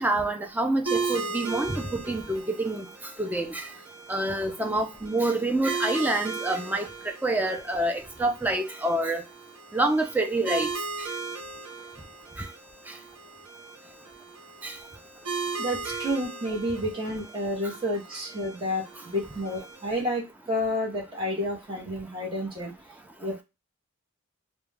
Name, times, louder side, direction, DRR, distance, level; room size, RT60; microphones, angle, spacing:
voice 1, 0.0-2.9 3.2-3.7 4.1-6.9 7.2-9.2 9.7-10.7 14.6-14.7 15.9-16.0, right 2 dB, 10° right, 0.4 m, -27 dB
sound 1, 0.9-20.0, right 4 dB, 75° right, 0.7 m, -37 dB
voice 2, 15.6-20.2 20.5-22.7 23.2-23.4, equal, 25° right, 0.8 m, -30 dB
2.3 x 2.1 x 3.2 m
head